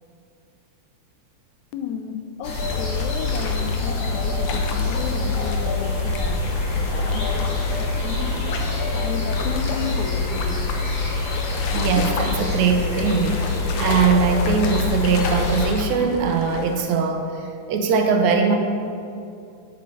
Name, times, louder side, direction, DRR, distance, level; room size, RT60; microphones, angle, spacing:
voice 1, 1.7-8.5 8.9-10.7, left 7 dB, 85° left, 8 dB, 2.1 m, -33 dB
sound 1, 2.4-15.7, left 3 dB, 40° left, 1.9 m, -25 dB
sound 2, 2.5-16.8, left 4 dB, 65° left, 1.4 m, -34 dB
voice 2, 11.7-13.4 13.8-18.6, right 5 dB, 75° right, 4 dB, 2.1 m, -21 dB
9.2 x 8.3 x 5.5 m, 2.4 s
omnidirectional pair, 3.3 m